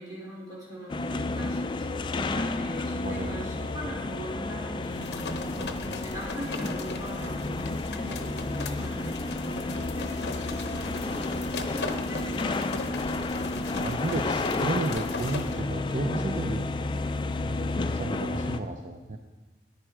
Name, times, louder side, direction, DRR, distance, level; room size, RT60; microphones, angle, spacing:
voice 1, 0.0-13.5 14.1-14.3, equal, 20° right, -7 dB, 4.2 m, -40 dB
sound 1, 0.9-18.6, left 2 dB, 25° left, 0.3 m, -31 dB
voice 2, 3.0-3.5 5.5-6.0 13.5-16.7 17.4-19.2, right 2 dB, 45° right, 4 dB, 0.6 m, -33 dB
sound 2, 4.8-15.6, left 4 dB, 65° left, 0.8 m, -39 dB
10.0 x 10.0 x 4.7 m, 1.2 s
head